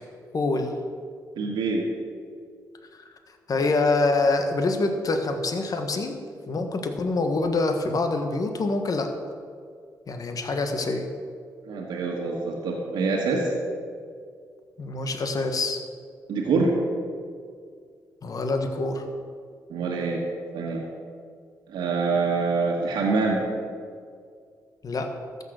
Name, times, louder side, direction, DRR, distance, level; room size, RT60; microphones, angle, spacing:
voice 1, 0.3-0.8 2.9-3.0 3.5-6.2 6.5-9.1 10.1-11.1 14.8-15.8 18.2-19.0 24.8-25.1, left 3 dB, 55° left, 5 dB, 1.5 m, -25 dB
voice 2, 1.4-1.9 11.6-13.5 16.3-16.7 19.7-20.2 20.5-20.8 21.7-23.4, right 4 dB, 85° right, -2 dB, 1.7 m, -25 dB
13.5 x 6.9 x 6.5 m, 2.1 s
supercardioid pair, 60°, 8 cm